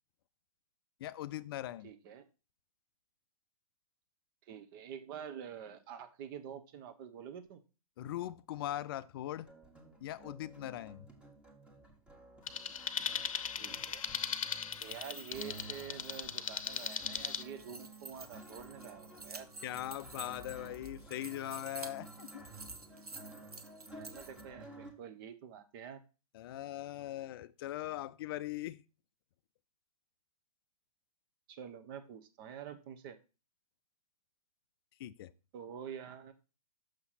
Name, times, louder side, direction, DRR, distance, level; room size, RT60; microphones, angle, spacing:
voice 1, 1.0-1.9 8.0-9.5 10.0-11.1 19.6-22.5 26.3-28.8 35.0-35.3, left 13 dB, 40° left, 0.4 m, -40 dB
voice 2, 1.8-2.2 4.4-7.6 13.5-14.0 14.8-19.5 23.9-26.0 31.5-33.2 35.5-36.3, right 8 dB, 35° right, 1.0 m, -47 dB
sound 1, 9.4-24.9, right 2 dB, 5° right, 1.5 m, -53 dB
sound 2, 12.5-17.4, left 7 dB, 65° left, 0.7 m, -38 dB
sound 3, 14.6-24.4, right 3 dB, 85° right, 1.0 m, -51 dB
6.6 x 5.6 x 4.1 m
figure-of-eight pair, 120°, 19 cm